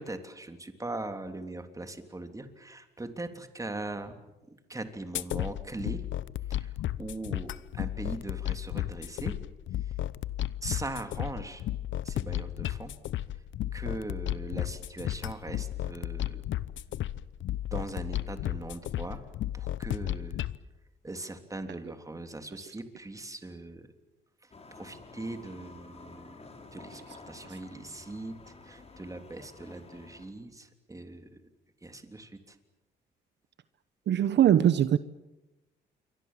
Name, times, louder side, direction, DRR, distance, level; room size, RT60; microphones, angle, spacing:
voice 1, 0.0-4.2 4.5-6.0 6.5-9.3 9.8-9.9 10.6-11.6 12.0-12.9 13.7-16.4 17.7-19.3 19.5-20.4 21.0-23.9 24.4-31.3 31.8-32.6, right 2 dB, 15° right, 7 dB, 3.3 m, -40 dB
sound 1, 5.1-20.6, left 13 dB, 75° left, 0.9 m, -34 dB
sound 2, 24.5-30.3, left 3 dB, 30° left, 4.8 m, -51 dB
voice 2, 34.1-35.0, right 10 dB, 65° right, 14 dB, 0.9 m, -22 dB
28.5 x 23.5 x 7.5 m, 1.0 s
cardioid pair, 90°, 20 cm